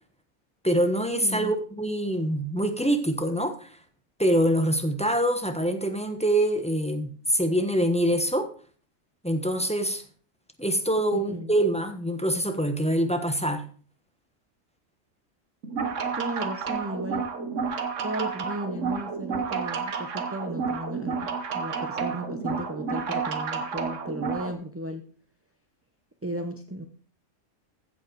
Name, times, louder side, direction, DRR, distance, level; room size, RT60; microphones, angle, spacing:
voice 1, 0.6-3.7 4.2-8.5 9.2-10.0 10.6-13.6, right 1 dB, 5° left, 7 dB, 0.9 m, -25 dB
voice 2, 1.2-1.5 11.1-11.5 16.1-17.2 18.0-25.1 26.2-26.8, right 1 dB, 15° right, 5 dB, 0.5 m, -35 dB
sound 1, 15.6-24.5, right 5 dB, 70° right, 1.5 m, -30 dB
15.0 x 5.4 x 4.7 m, 0.43 s
omnidirectional pair, 1.3 m